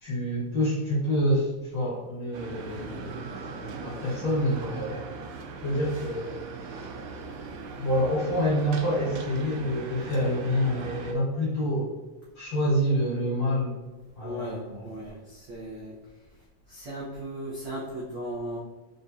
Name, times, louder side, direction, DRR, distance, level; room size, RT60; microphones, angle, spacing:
voice 1, 0.0-3.3 3.6-5.1 5.6-6.4 6.7-6.9 7.8-12.0 12.3-13.7 14.2-14.9, equal, 45° left, -8 dB, 2.1 m, -27 dB
sound 1, 2.3-11.1, right 4 dB, 85° right, 2.0 m, -39 dB
voice 2, 14.2-16.0 16.7-18.6, right 1 dB, 65° right, -7 dB, 1.1 m, -37 dB
4.7 x 3.6 x 2.7 m, 1.2 s
omnidirectional pair, 3.3 m